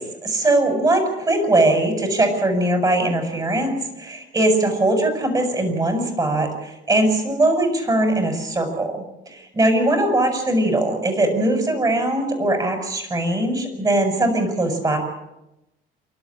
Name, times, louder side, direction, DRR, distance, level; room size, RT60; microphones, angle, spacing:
voice 1, 0.0-15.0, right 1 dB, 20° right, 5 dB, 7.1 m, -21 dB
28.0 x 12.5 x 8.8 m, 0.94 s
cardioid pair, 110°, 17 cm